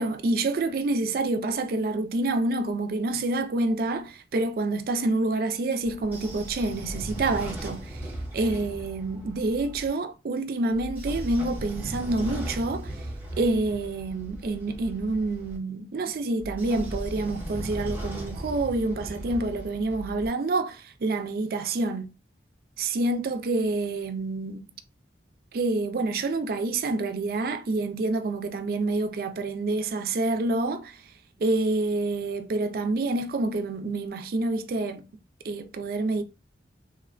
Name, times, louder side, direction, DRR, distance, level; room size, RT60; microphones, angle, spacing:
voice 1, 0.0-8.0 8.3-13.1 13.4-22.1 22.8-24.7 25.5-31.0 31.4-35.0 35.4-36.2, right 2 dB, 55° right, 0.3 m, -27 dB
Train / Sliding door, 5.8-9.9 10.7-15.6 16.4-20.3, right 1 dB, 10° right, 0.7 m, -37 dB
3.2 x 2.1 x 2.4 m
head